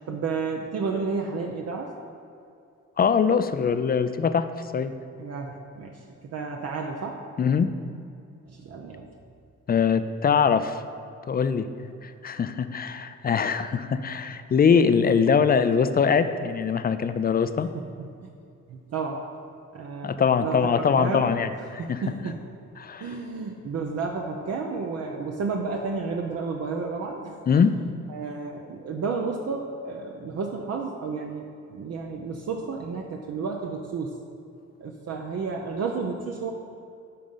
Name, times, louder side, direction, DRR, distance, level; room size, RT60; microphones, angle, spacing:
voice 1, 0.1-1.9 5.2-7.2 8.5-9.1 17.7-18.3 18.7-19.3 19.7-20.6 21.0-21.3 21.6-22.4 23.0-27.4 28.1-34.2 34.8-36.5, right 4 dB, 55° right, 1 dB, 0.8 m, -32 dB
voice 2, 3.0-4.5 4.7-4.9 7.4-7.8 9.7-10.8 11.3-11.7 12.0-17.7 20.0-22.0 22.8-23.1 27.5-27.8, left 6 dB, 30° left, 11 dB, 0.4 m, -22 dB
10.0 x 3.8 x 5.6 m, 2.5 s
cardioid pair, 90°, 30 cm